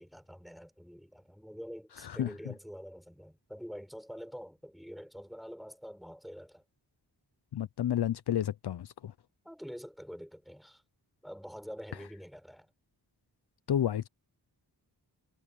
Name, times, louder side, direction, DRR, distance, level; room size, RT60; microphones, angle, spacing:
voice 1, 0.0-6.6 9.5-10.8 11.2-12.7, equal, ahead, 7.0 m, -46 dB
voice 2, 2.0-2.3 7.5-9.1 13.7-14.1, left 10 dB, 70° left, 0.7 m, -31 dB
wide cardioid pair, 80°, 42 cm